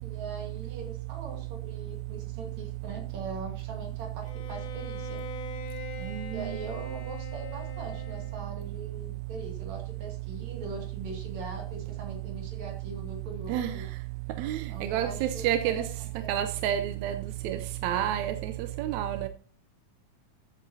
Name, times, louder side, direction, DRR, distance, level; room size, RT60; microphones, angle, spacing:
voice 1, 0.0-5.2 6.3-13.9 14.7-15.8 16.2-16.3, right 3 dB, 60° right, 3.5 m, -41 dB
Bowed string instrument, 4.2-8.6, left 5 dB, 70° left, 1.1 m, -43 dB
voice 2, 6.1-6.6 13.5-13.8 14.4-14.6 14.9-15.8 16.3-17.2 17.4-18.5 18.8-19.3, right 11 dB, 80° right, 1.8 m, -29 dB
13.5 x 8.4 x 2.7 m
omnidirectional pair, 3.6 m